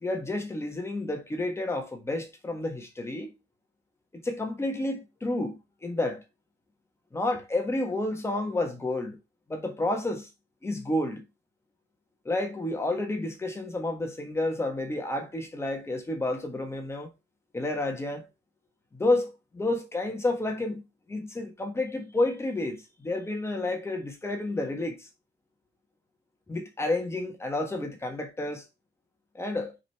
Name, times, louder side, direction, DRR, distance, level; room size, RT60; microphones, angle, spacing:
voice 1, 0.0-3.3 4.1-6.2 7.1-9.2 9.5-10.3 10.6-11.2 12.2-17.1 17.5-18.3 18.9-20.8 21.1-25.1 26.5-28.6 29.3-29.7, left 2 dB, 15° left, 1.4 m, -30 dB
5.2 x 5.0 x 4.6 m
cardioid pair, 170°, 19 cm